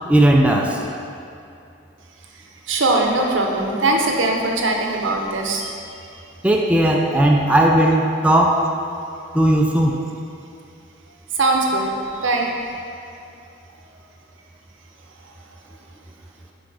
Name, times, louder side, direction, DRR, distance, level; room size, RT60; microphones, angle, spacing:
voice 1, 0.1-0.8 6.4-8.6 9.3-10.0, right 1 dB, 5° right, 0 dB, 0.3 m, -16 dB
voice 2, 2.7-6.2 11.3-12.5 15.3-15.4, right 2 dB, 70° right, 1 dB, 0.7 m, -21 dB
6.2 x 3.9 x 4.7 m, 2.6 s
head